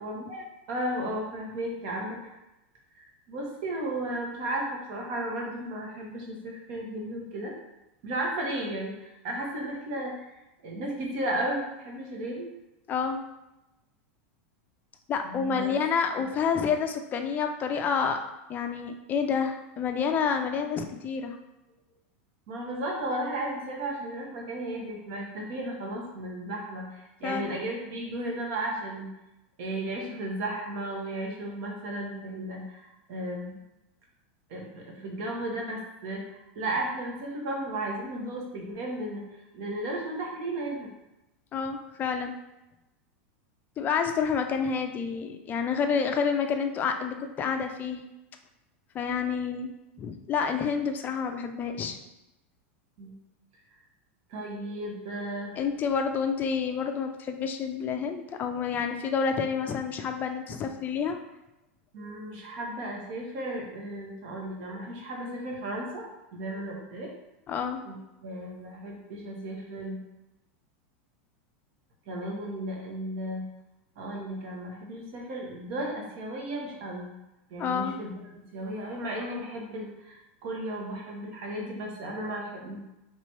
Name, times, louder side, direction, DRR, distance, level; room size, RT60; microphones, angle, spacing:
voice 1, 0.0-2.3 3.0-7.5 8.0-10.1 10.6-12.5 15.2-15.8 22.5-29.1 29.6-33.6 34.5-39.2 39.5-40.9 53.0-53.1 54.3-55.5 61.9-66.0 66.3-67.1 67.8-70.0 72.1-73.4 74.0-77.1 77.5-82.8, right 1 dB, 60° right, -1 dB, 1.3 m, -34 dB
voice 2, 12.9-13.2 15.1-18.2 18.5-21.4 27.2-27.6 41.5-42.3 43.8-48.0 48.9-49.7 50.0-52.0 55.6-61.2 67.5-67.8 77.6-78.0, left 6 dB, 25° left, 6 dB, 0.4 m, -29 dB
3.3 x 3.0 x 4.4 m, 0.94 s
supercardioid pair, 135°, 7 cm